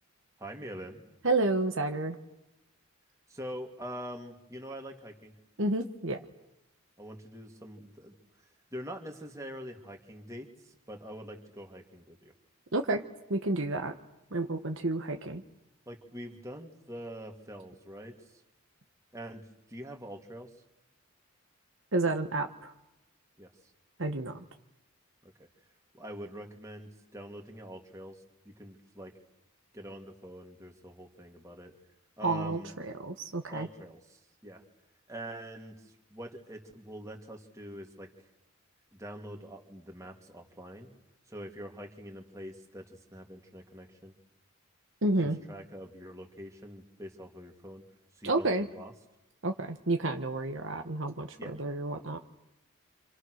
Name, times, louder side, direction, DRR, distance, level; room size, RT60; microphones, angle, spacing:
voice 1, 0.4-1.0 3.3-5.3 7.0-8.1 8.7-12.3 15.9-18.4 19.1-20.5 23.4-23.5 25.2-25.3 25.9-29.1 29.7-31.7 32.2-32.7 33.5-34.6 35.1-38.1 38.9-40.9 41.3-44.1 45.2-47.8 48.1-48.9 51.4-51.5, equal, 15° right, 2 dB, 2.9 m, -44 dB
voice 2, 1.2-2.2 5.6-6.2 12.7-13.0 13.3-13.9 14.3-15.4 21.9-22.7 24.0-24.3 32.2-32.6 33.0-33.7 45.0-45.4 48.2-48.7 49.4-51.3 51.6-52.2, right 2 dB, 55° right, 5 dB, 1.3 m, -30 dB
29.5 x 27.0 x 6.5 m, 0.90 s
head